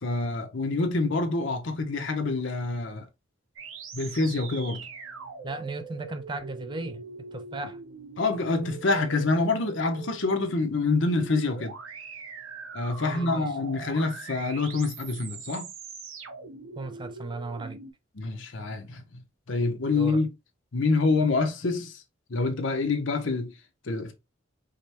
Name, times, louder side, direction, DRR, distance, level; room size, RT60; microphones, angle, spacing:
voice 1, 0.0-3.1 3.9-4.9 8.2-11.8 12.7-15.7 18.2-19.2 19.5-20.3 20.7-22.0 22.3-23.5 23.8-24.1, left 3 dB, 65° left, 0.8 m, -26 dB
sound 1, 3.6-17.9, right 4 dB, 90° right, 0.8 m, -42 dB
voice 2, 5.4-7.0 7.3-7.8 13.0-13.6 16.8-17.8 19.6-20.2, right 3 dB, 25° right, 0.4 m, -36 dB
5.0 x 2.1 x 2.8 m
head